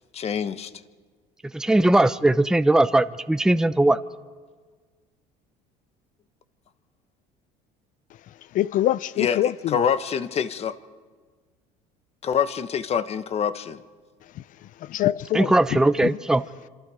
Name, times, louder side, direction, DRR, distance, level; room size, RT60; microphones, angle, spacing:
voice 1, 0.1-0.7 9.2-9.4 9.7-10.8 12.2-13.8, left 7 dB, 40° left, 1.3 m, -25 dB
voice 2, 1.5-4.0 15.3-16.4, right 1 dB, 5° right, 0.7 m, -19 dB
voice 3, 8.5-9.8 14.4-14.5 14.8-16.1, left 13 dB, 55° left, 0.6 m, -25 dB
27.5 x 26.5 x 5.0 m
supercardioid pair, 100°, 16 cm